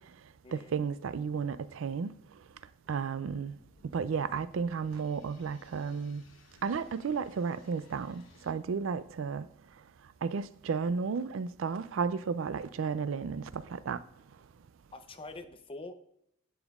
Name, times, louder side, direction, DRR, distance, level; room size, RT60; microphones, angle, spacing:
voice 1, 0.5-2.1 2.9-3.5 3.9-6.2 6.6-9.5 10.2-14.0, right 5 dB, 75° right, 0.4 m, -33 dB
sound 1, 3.2-8.5, left 2 dB, 75° left, 1.2 m, -60 dB
voice 2, 14.9-15.9, left 2 dB, 25° left, 0.6 m, -45 dB
10.5 x 7.1 x 2.4 m
head